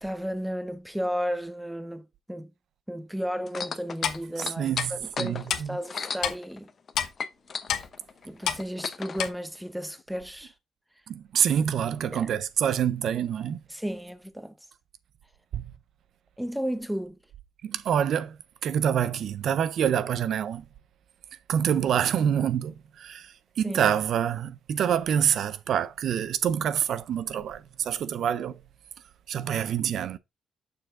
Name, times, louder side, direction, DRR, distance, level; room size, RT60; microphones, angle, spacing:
voice 1, 0.0-2.5 2.9-6.7 8.2-10.5 12.1-12.3 13.7-14.5 16.4-17.2 23.6-23.8, equal, 5° right, 0.8 m, -33 dB
sound 1, 3.5-6.9 7.2-9.2 10.0-10.1, left 5 dB, 45° left, 0.7 m, -35 dB
Clock, 4.0-4.2 4.8-4.9 5.5-5.6 6.2-6.4 7.0-7.1 7.7-7.9 8.5-8.6 9.2-9.3, left 9 dB, 75° left, 0.9 m, -27 dB
voice 2, 4.6-5.8 11.1-13.6 15.5-15.6 17.6-18.4 18.6-20.6 21.5-28.6 29.3-30.2, right 9 dB, 70° right, 0.4 m, -26 dB
6.6 x 4.6 x 3.6 m
cardioid pair, 90°, 0 cm